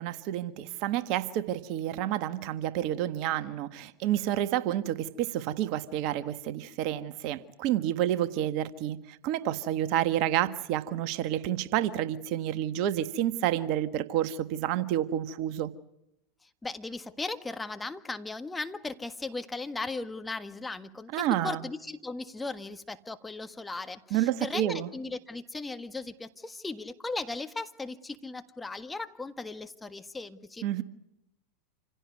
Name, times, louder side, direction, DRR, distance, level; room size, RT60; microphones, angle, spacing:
voice 1, 0.0-9.0 9.2-15.7 21.1-21.6 24.1-24.9 30.6-30.8, right 12 dB, 55° right, 1.5 m, -29 dB
voice 2, 16.4-30.8, left 3 dB, 10° left, 1.6 m, -37 dB
27.5 x 16.5 x 9.6 m
hypercardioid pair, 90°, 0 cm